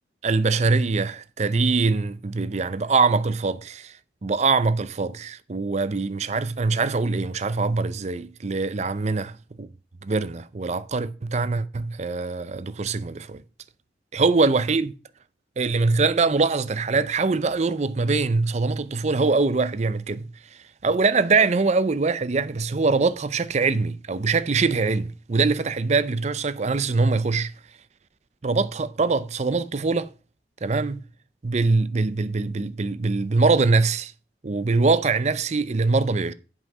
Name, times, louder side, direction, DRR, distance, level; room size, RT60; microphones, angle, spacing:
voice 1, 0.2-3.9 4.2-9.3 9.6-9.7 10.0-13.4 14.1-14.9 15.6-20.3 20.8-27.5 28.4-30.1 30.6-31.0 31.4-34.1 34.4-36.3, right 4 dB, 35° right, 0.5 m, -23 dB
8.2 x 5.6 x 6.0 m
head